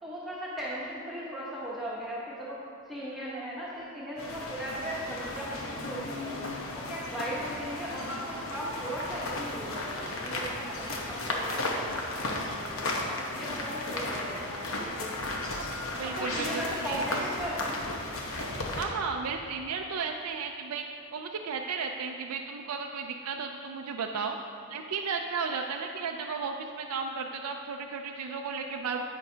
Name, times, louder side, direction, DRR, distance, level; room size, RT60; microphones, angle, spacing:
voice 1, 0.0-2.6 2.9-6.5 6.7-12.9 13.3-15.2 16.0-17.8, equal, ahead, -9 dB, 1.1 m, -37 dB
sound 1, 4.2-18.8, left 2 dB, 70° left, 1.0 m, -35 dB
voice 2, 16.0-17.2 18.8-20.8 21.1-24.4 24.7-29.0, right 5 dB, 85° right, 3 dB, 0.4 m, -34 dB
10.5 x 8.1 x 2.8 m, 2.4 s
head